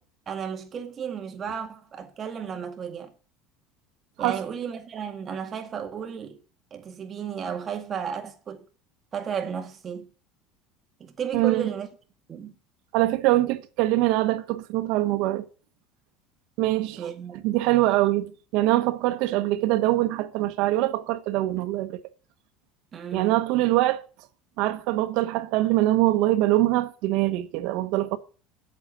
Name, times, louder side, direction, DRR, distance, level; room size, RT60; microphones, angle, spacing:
voice 1, 0.3-3.1 4.2-6.4 6.7-8.7 9.1-10.1 11.0-11.9 12.3-12.5 17.0-17.4 17.8-18.0 22.9-23.4, right 7 dB, 30° right, 2.0 m, -33 dB
voice 2, 11.3-11.7 12.9-15.5 16.6-17.0 17.4-22.0 23.1-24.0 24.6-28.2, right 16 dB, 65° right, 1.2 m, -23 dB
8.3 x 8.0 x 8.7 m
cardioid pair, 140°, 0 cm